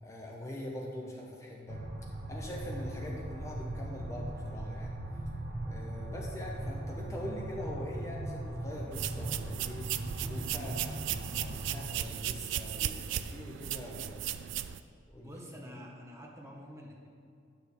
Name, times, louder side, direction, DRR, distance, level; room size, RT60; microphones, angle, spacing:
voice 1, 0.0-1.8 2.3-4.9 5.6-14.1 15.1-15.3, left 1 dB, 15° left, -2 dB, 0.7 m, -43 dB
sound 1, 1.7-11.8, right 1 dB, 45° right, 0.9 m, -39 dB
sound 2, 8.9-14.8, right 11 dB, 65° right, 0.3 m, -36 dB
voice 2, 15.2-17.1, equal, 15° right, -1 dB, 0.9 m, -47 dB
9.7 x 6.5 x 3.5 m, 2.5 s
head